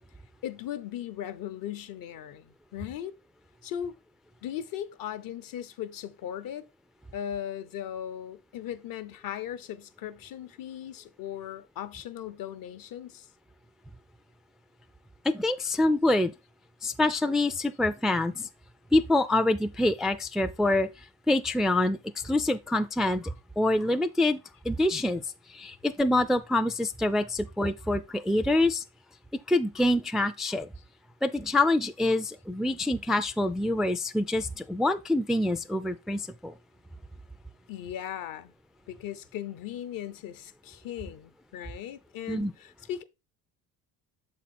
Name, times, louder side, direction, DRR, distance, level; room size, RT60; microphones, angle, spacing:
voice 1, 0.4-3.1 3.6-3.9 4.4-6.7 7.1-13.3 37.7-38.5 38.9-43.0, left 10 dB, 65° left, 0.8 m, -38 dB
voice 2, 15.2-16.3 16.8-18.5 18.9-20.9 21.3-22.0 22.2-24.4 24.6-25.2 25.5-28.8 29.5-30.7 31.2-36.5 42.3-42.5, left 2 dB, ahead, 0.3 m, -26 dB
6.9 x 4.3 x 4.2 m
cardioid pair, 95°, 36 cm